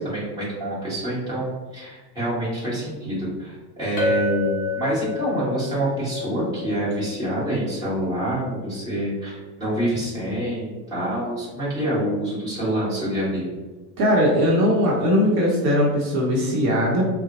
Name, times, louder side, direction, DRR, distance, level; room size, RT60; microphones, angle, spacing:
voice 1, 0.0-13.5, right 1 dB, 10° right, -10 dB, 1.2 m, -26 dB
Chink clink, 4.0-8.4, left 5 dB, 20° left, 0.4 m, -30 dB
voice 2, 14.0-17.0, equal, 55° right, -2 dB, 0.9 m, -19 dB
3.8 x 2.1 x 2.9 m, 1.2 s
supercardioid pair, 160°, 50 cm